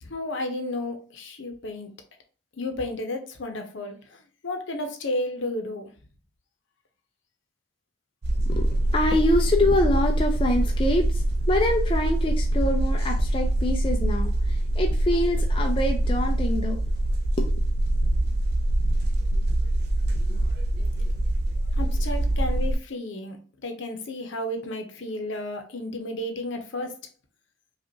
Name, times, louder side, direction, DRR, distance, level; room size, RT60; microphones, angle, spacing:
voice 1, 0.0-1.9 2.6-5.9 21.8-27.0, left 1 dB, 65° left, 0.8 m, -32 dB
sound 1, 8.2-22.8, right 1 dB, 50° right, 0.5 m, -24 dB
voice 2, 8.5-16.8 17.4-17.7, left 1 dB, 25° left, 0.3 m, -25 dB
5.1 x 2.4 x 2.8 m
head